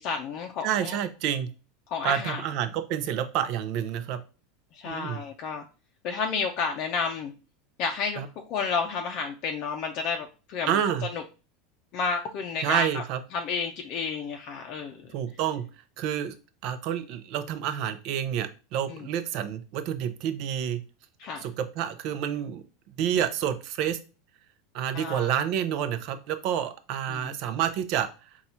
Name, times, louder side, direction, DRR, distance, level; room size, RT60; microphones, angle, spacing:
voice 1, 0.0-1.0 1.9-2.4 4.7-5.6 6.0-7.3 7.8-10.8 11.1-11.2 11.9-13.0 13.3-15.1 18.9-19.1 21.2-21.5 24.9-25.3 27.1-27.3, left 5 dB, 50° left, 3 dB, 0.5 m, -31 dB
voice 2, 0.6-1.5 2.0-4.2 4.8-5.2 8.2-8.3 10.7-11.1 12.6-13.2 15.1-15.6 16.0-16.3 16.6-20.8 21.4-22.6 23.0-24.0 24.7-28.1, right 9 dB, 55° right, 10 dB, 0.6 m, -29 dB
4.0 x 2.4 x 4.3 m, 0.33 s
supercardioid pair, 125°, 0 cm